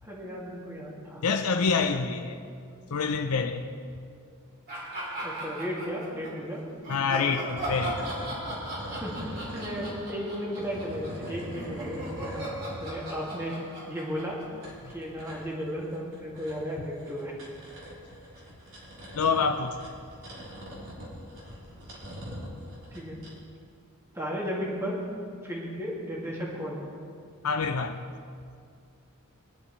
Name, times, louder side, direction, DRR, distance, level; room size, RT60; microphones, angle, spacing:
voice 1, 0.0-1.2 5.2-6.6 8.9-12.5 12.8-13.5 13.9-14.4 14.9-17.3 22.9-23.2 24.1-25.0 25.4-26.8, equal, 10° right, -5 dB, 2.3 m, -35 dB
voice 2, 1.2-2.4 2.9-3.7 6.9-8.1 14.8-14.9 19.1-19.8 27.4-28.0, left 5 dB, 85° left, 5 dB, 0.6 m, -27 dB
sound 1, 4.7-6.3 6.8-15.1, right 1 dB, 45° right, 3.2 m, -38 dB
sound 2, 7.4-10.0 10.4-12.9 14.2-23.3, equal, 60° right, 3.8 m, -42 dB
22.0 x 11.0 x 3.2 m, 2.3 s
head